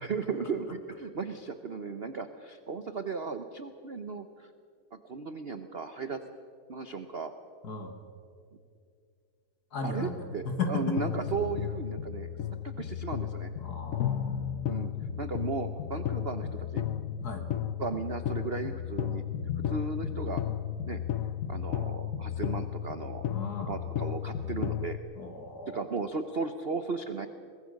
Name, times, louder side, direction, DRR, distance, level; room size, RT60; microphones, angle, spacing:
voice 1, 0.0-4.5 4.9-6.2 6.7-7.3 9.8-12.3 12.6-13.5 14.7-16.8 17.8-19.2 19.6-20.4 20.8-21.0 21.5-23.3 23.7-25.0 25.7-27.3, right 4 dB, 70° right, 9 dB, 0.5 m, -36 dB
voice 2, 7.6-8.0 9.7-11.0 13.6-14.4 17.2-17.5 23.3-23.8 25.2-25.8, left 3 dB, 50° left, 5 dB, 2.1 m, -35 dB
sound 1, 11.0-25.0, left 10 dB, 70° left, 0.8 m, -34 dB
22.5 x 20.0 x 6.4 m, 2.4 s
omnidirectional pair, 2.3 m